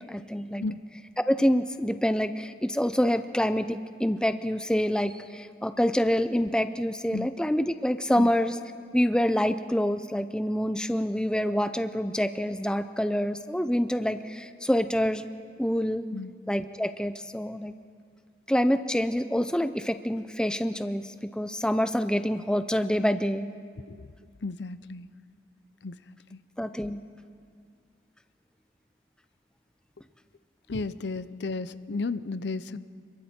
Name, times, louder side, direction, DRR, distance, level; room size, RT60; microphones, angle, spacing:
voice 1, 0.1-0.6 1.2-8.6 8.9-15.3 15.6-16.0 16.5-17.7 18.5-23.5 26.6-27.0, equal, 5° left, 10 dB, 0.5 m, -26 dB
voice 2, 24.4-25.1 25.8-26.0 26.3-26.4 30.7-32.8, left 3 dB, 75° left, 14 dB, 0.6 m, -33 dB
29.0 x 22.5 x 4.4 m, 2.2 s
head